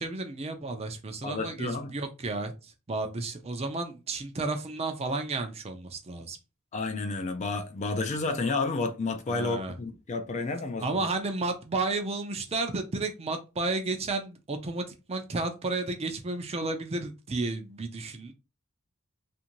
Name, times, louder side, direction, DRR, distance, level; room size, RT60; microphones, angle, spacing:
voice 1, 0.0-6.4 9.3-9.7 10.8-18.3, right 3 dB, 30° right, 0.5 m, -32 dB
voice 2, 1.2-1.9 6.7-11.1, left 3 dB, 35° left, 0.4 m, -31 dB
2.6 x 2.5 x 2.9 m
head